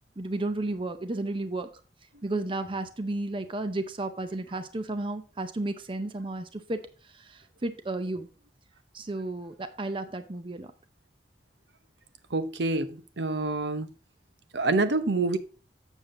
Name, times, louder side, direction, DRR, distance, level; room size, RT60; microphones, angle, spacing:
voice 1, 0.2-1.7 2.2-6.8 7.1-8.3 8.9-10.7, right 2 dB, 30° right, 0.7 m, -33 dB
voice 2, 12.3-13.9 14.5-15.4, right 3 dB, 80° right, 0.8 m, -27 dB
7.3 x 7.1 x 3.7 m
head